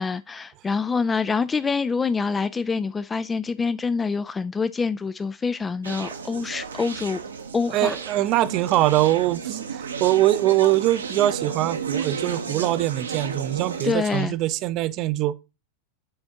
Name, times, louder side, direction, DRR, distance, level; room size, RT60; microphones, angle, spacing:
voice 1, 0.0-7.2 7.5-8.0 13.8-14.3, left 5 dB, 15° left, 0.3 m, -26 dB
Conversation, 5.8-14.3, right 6 dB, 70° right, 0.9 m, -33 dB
voice 2, 7.7-15.3, right 15 dB, 40° right, 0.5 m, -22 dB
8.6 x 4.3 x 3.5 m
figure-of-eight pair, 90°, 0 cm